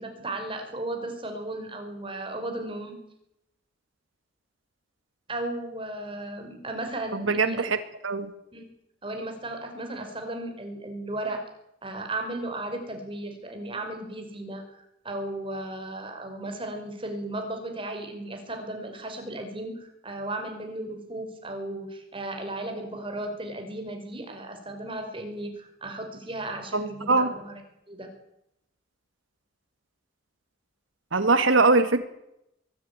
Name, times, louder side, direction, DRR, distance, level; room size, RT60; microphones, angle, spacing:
voice 1, 0.0-3.0 5.3-7.6 8.5-8.7 9.0-11.4 11.8-27.6 27.9-28.1, right 1 dB, 25° right, 4 dB, 5.4 m, -35 dB
voice 2, 7.3-7.8 8.0-8.3 26.7-27.3 31.1-32.0, right 3 dB, 85° right, 9 dB, 2.0 m, -22 dB
23.0 x 14.0 x 9.8 m, 0.81 s
head